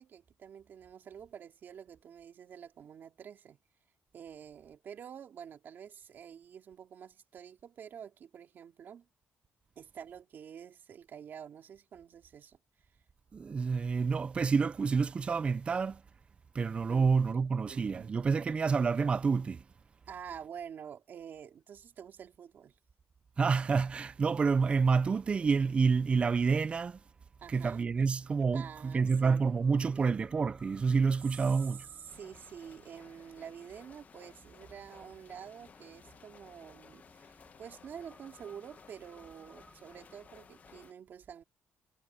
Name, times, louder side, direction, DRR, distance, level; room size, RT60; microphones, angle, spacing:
voice 1, 0.0-3.6 4.1-9.1 9.7-12.6 16.9-17.1 17.5-18.2 20.1-22.7 27.4-28.1 28.5-30.1 31.5-41.4, right 8 dB, 50° right, 3.2 m, -48 dB
voice 2, 13.3-16.0 16.5-19.6 23.4-27.0 27.5-31.9, right 5 dB, 25° right, 0.4 m, -28 dB
sound 1, 27.9-40.9, equal, 5° right, 3.3 m, -63 dB
sound 2, 32.1-40.9, left 6 dB, 35° left, 1.1 m, -57 dB
cardioid pair, 150°, 4 cm